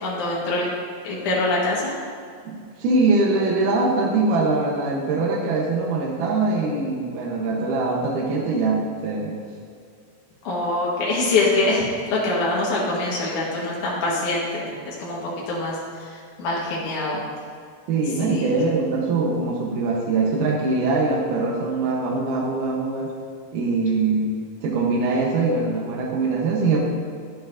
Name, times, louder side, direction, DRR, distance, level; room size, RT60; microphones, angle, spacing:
voice 1, 0.0-0.7 1.0-1.9 10.4-17.2 18.2-18.5, left 2 dB, 70° left, -5 dB, 2.7 m, -24 dB
voice 2, 2.5-9.4 17.9-23.1 23.5-24.4 24.6-26.8, right 3 dB, 80° right, -2 dB, 2.5 m, -22 dB
11.5 x 8.2 x 2.5 m, 2.3 s
omnidirectional pair, 3.7 m